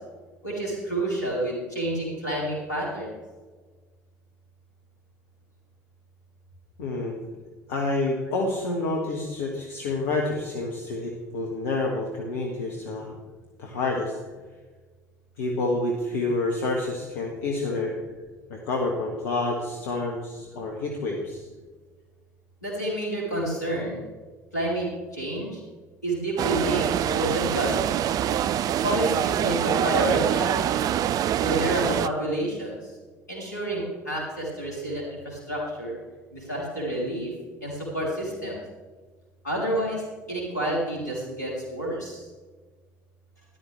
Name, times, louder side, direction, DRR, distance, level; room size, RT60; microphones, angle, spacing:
voice 1, 0.4-3.2 22.6-24.0 24.5-25.6 26.0-28.0 28.8-30.6 31.3-32.7 33.3-35.9 36.3-37.3 37.6-38.6 39.4-42.3, right 1 dB, 85° left, -3 dB, 3.7 m, -29 dB
voice 2, 6.8-7.2 7.7-13.1 13.6-14.2 15.4-17.9 18.5-21.4, left 2 dB, 65° left, 0 dB, 1.6 m, -28 dB
sound 1, 26.4-32.1, right 10 dB, 45° right, 0.5 m, -25 dB
13.0 x 11.5 x 3.4 m, 1.4 s
figure-of-eight pair, 60°, 9 cm